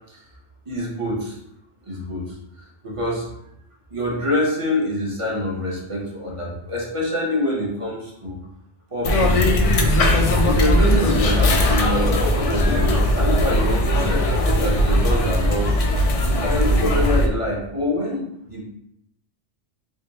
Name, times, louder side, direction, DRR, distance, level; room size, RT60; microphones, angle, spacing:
voice 1, 0.7-1.4 1.8-2.4 2.8-3.2 3.9-8.4 8.9-9.6 10.0-15.7 16.4-18.6, left 1 dB, 30° right, -4 dB, 0.9 m, -26 dB
sound 1, 9.0-17.3, left 1 dB, 60° left, 0.3 m, -19 dB
3.6 x 2.1 x 4.0 m, 0.78 s
omnidirectional pair, 1.2 m